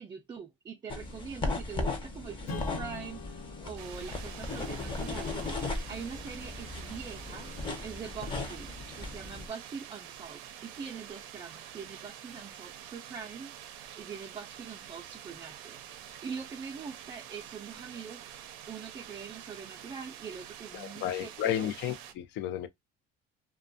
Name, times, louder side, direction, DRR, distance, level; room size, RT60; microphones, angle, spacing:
voice 1, 0.0-5.4 5.7-7.5 7.8-13.5 14.0-15.8 16.2-18.2 18.7-21.7, right 6 dB, 25° right, 0.4 m, -43 dB
sound 1, 0.9-9.5, left 3 dB, 25° left, 0.7 m, -37 dB
Strum, 2.4-7.4, left 4 dB, 80° left, 0.9 m, -47 dB
sound 2, 3.8-22.1, right 10 dB, 80° right, 0.5 m, -47 dB
voice 2, 20.7-22.7, left 11 dB, 60° left, 0.5 m, -33 dB
2.5 x 2.2 x 2.4 m
cardioid pair, 115°, 21 cm